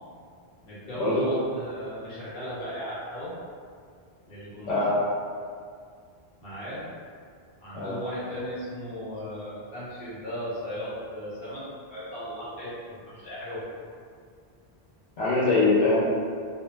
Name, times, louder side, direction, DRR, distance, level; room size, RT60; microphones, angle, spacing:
voice 1, 0.6-3.4 4.3-4.8 6.4-6.8 7.6-11.6 11.9-13.6, equal, 60° left, -10 dB, 1.3 m, -36 dB
voice 2, 4.7-5.0 7.7-8.0 15.2-16.1, left 2 dB, 80° left, -9 dB, 0.9 m, -23 dB
2.3 x 2.1 x 3.2 m, 2.2 s
omnidirectional pair, 1.1 m